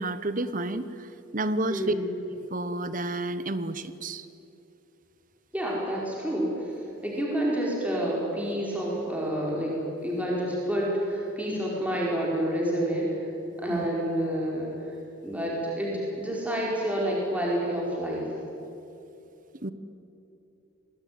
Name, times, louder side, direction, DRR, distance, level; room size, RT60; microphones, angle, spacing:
voice 1, 0.0-1.9 2.5-4.3 13.7-13.9 19.6-19.7, right 2 dB, 40° right, 13 dB, 1.0 m, -30 dB
voice 2, 1.7-2.1 5.5-6.7 7.0-13.3 13.6-14.7 15.2-18.3, equal, 5° right, -4 dB, 4.8 m, -28 dB
27.0 x 20.5 x 9.6 m, 2.8 s
head